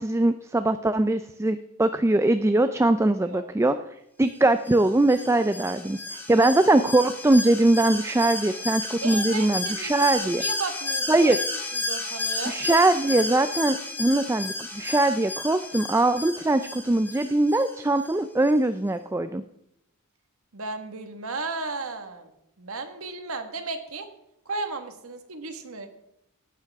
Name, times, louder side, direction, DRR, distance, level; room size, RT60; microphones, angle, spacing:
voice 1, 0.0-3.8 4.2-10.4 11.1-11.4 12.5-19.4, right 2 dB, 15° right, 10 dB, 0.4 m, -22 dB
Alarm, 4.7-18.1 18.5-18.6, left 2 dB, 10° left, 1.6 m, -33 dB
voice 2, 9.0-11.3 11.7-12.5 20.5-22.3 22.6-24.1 24.4-25.9, right 3 dB, 80° right, 8 dB, 1.6 m, -34 dB
17.5 x 10.0 x 3.5 m, 0.83 s
head